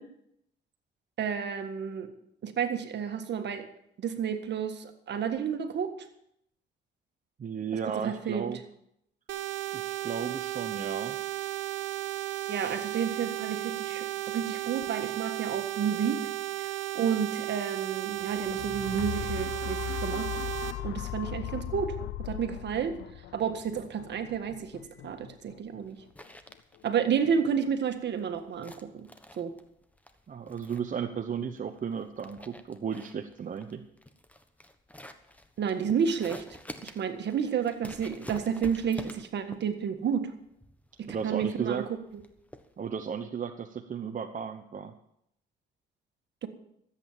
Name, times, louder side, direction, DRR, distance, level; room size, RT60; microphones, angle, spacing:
voice 1, 1.2-2.1 2.4-3.7 4.0-5.9 7.9-8.5 12.5-16.2 16.6-20.3 20.8-26.0 26.8-29.1 29.4-29.5 35.6-36.4 36.8-40.3 41.0-41.8 42.1-42.2 46.4-46.5, right 7 dB, 60° right, 7 dB, 1.7 m, -31 dB
voice 2, 7.4-8.6 9.7-11.2 30.3-33.8 41.1-41.9 42.8-44.9, right 7 dB, 40° right, 5 dB, 0.9 m, -34 dB
sound 1, 9.3-20.7, right 16 dB, 85° right, 1.2 m, -34 dB
sound 2, 18.2-26.2 26.8-26.9, left 15 dB, 70° left, 0.5 m, -38 dB
sound 3, 24.4-43.1, left 1 dB, 5° left, 1.3 m, -49 dB
13.5 x 8.4 x 7.4 m, 0.75 s
cardioid pair, 90°, 20 cm